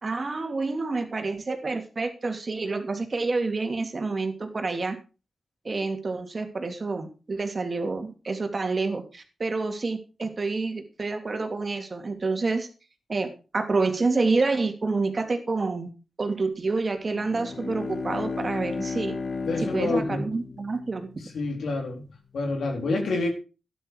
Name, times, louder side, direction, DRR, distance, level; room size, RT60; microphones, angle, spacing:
voice 1, 0.0-5.0 5.6-12.7 13.1-15.9 16.2-19.1 19.6-21.1, right 3 dB, 45° right, 6 dB, 2.9 m, -28 dB
Bowed string instrument, 17.0-21.7, left 4 dB, 60° left, 2.0 m, -34 dB
voice 2, 19.4-20.3 21.3-22.0 22.3-23.3, left 3 dB, 80° left, 2 dB, 3.9 m, -27 dB
13.0 x 10.0 x 4.9 m, 0.33 s
cardioid pair, 55°, 0 cm